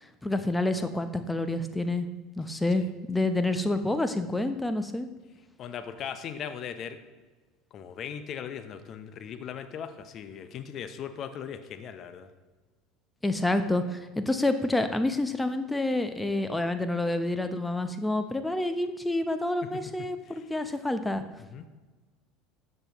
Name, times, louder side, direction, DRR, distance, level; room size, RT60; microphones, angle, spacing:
voice 1, 0.2-2.1 2.4-5.1 13.2-21.2, left 2 dB, 10° left, 8 dB, 0.9 m, -28 dB
voice 2, 5.6-7.0 7.7-12.3 20.3-20.5 21.4-21.6, left 8 dB, 45° left, 10 dB, 0.9 m, -39 dB
13.0 x 7.8 x 3.1 m, 1.3 s
hypercardioid pair, 75°, 0 cm